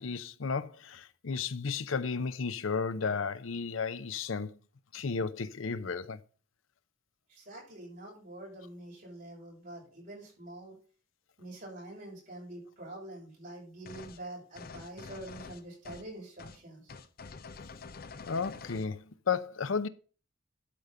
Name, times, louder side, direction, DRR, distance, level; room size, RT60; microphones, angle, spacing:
voice 1, 0.0-4.6 4.9-6.2 18.3-19.9, left 5 dB, 90° left, 0.7 m, -33 dB
voice 2, 7.3-10.8 11.4-16.9, right 1 dB, 45° right, 6.6 m, -46 dB
sound 1, 13.9-14.2 14.6-16.1 16.4-16.6 16.9-18.9, left 4 dB, 50° left, 0.6 m, -47 dB
12.0 x 5.1 x 5.6 m
head